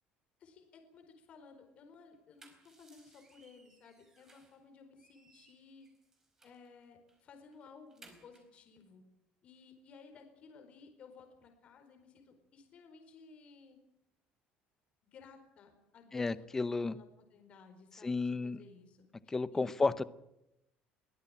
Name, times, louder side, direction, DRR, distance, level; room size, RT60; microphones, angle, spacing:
voice 1, 0.4-5.9 6.4-9.0 9.4-13.8 15.1-16.6 16.9-19.8, left 5 dB, 40° left, 6 dB, 4.4 m, -57 dB
sound 1, 2.1-4.6 5.0-6.7 7.1-7.2 7.5-8.6, right 2 dB, 15° right, 4.5 m, -63 dB
voice 2, 16.1-17.0 18.0-18.6 19.3-20.0, left 3 dB, 15° left, 16 dB, 0.7 m, -32 dB
22.0 x 17.5 x 8.8 m, 0.84 s
cardioid pair, 170°, 3 cm